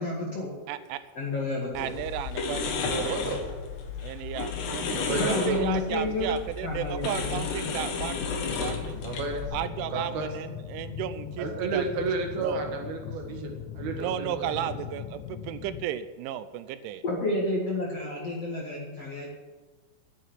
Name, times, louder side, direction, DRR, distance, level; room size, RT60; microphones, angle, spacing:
voice 1, 0.0-0.5 1.2-1.9 5.1-6.3 6.6-7.4 17.0-19.3, left 2 dB, 45° left, -2 dB, 2.1 m, -30 dB
voice 2, 0.7-1.0 1.7-3.2 4.0-9.0 9.5-11.9 12.4-12.6 13.9-17.0, right 11 dB, 85° right, 12 dB, 3.1 m, -34 dB
sound 1, 1.7-9.5, left 5 dB, 65° left, 3.6 m, -32 dB
voice 3, 3.0-3.4 4.9-5.6 9.0-9.4 9.9-10.3 11.4-14.7, right 4 dB, 60° right, 3 dB, 3.1 m, -32 dB
sound 2, 8.5-15.9, left 9 dB, 85° left, 3.1 m, -40 dB
11.0 x 9.2 x 9.9 m, 1.3 s
omnidirectional pair, 5.5 m